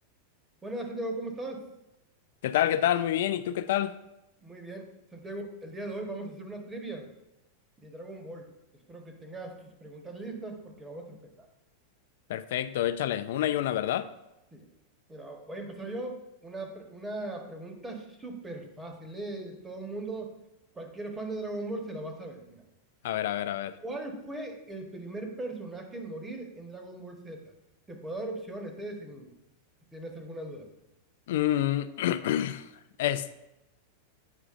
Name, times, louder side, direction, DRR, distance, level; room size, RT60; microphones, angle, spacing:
voice 1, 0.6-1.7 4.4-7.1 7.8-8.5 8.9-11.5 14.5-14.7 15.1-20.4 20.7-22.6 23.8-27.5 27.9-29.3 29.9-30.7, right 2 dB, 15° right, 3 dB, 1.2 m, -39 dB
voice 2, 2.4-4.0 12.3-14.1 23.0-23.8 31.3-33.4, left 12 dB, 70° left, 13 dB, 0.3 m, -28 dB
8.2 x 4.9 x 2.5 m, 0.93 s
hypercardioid pair, 105°, 0 cm